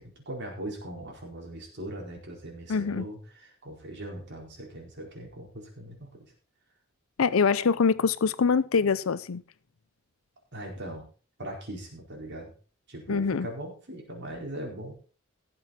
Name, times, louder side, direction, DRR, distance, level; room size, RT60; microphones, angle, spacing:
voice 1, 0.0-6.1 10.5-11.0 11.4-12.5 12.9-14.9, right 1 dB, 55° right, 4.5 m, -40 dB
voice 2, 2.7-3.1 7.2-9.4 13.1-13.5, left 5 dB, 75° left, 0.6 m, -24 dB
18.0 x 7.7 x 4.3 m
head